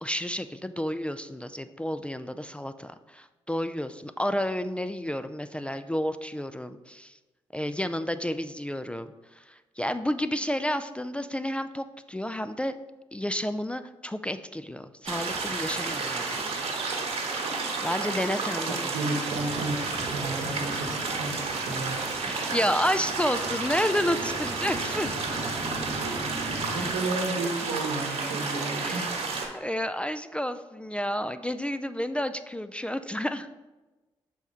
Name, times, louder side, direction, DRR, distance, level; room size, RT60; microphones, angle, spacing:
voice 1, 0.0-7.2 7.5-12.8 13.1-16.5 17.8-19.2 22.2-25.2 26.8-27.0 28.8-29.1 29.5-33.5, equal, 10° left, 11 dB, 0.3 m, -31 dB
sound 1, 15.1-29.5, right 4 dB, 55° right, 1.2 m, -31 dB
voice 2, 18.7-22.6 25.1-25.2 26.0-29.1, right 2 dB, 80° right, 2 dB, 1.0 m, -33 dB
sound 2, 19.3-26.9, equal, 20° right, 1.0 m, -40 dB
5.9 x 4.2 x 3.9 m, 1.2 s
hypercardioid pair, 45°, 13 cm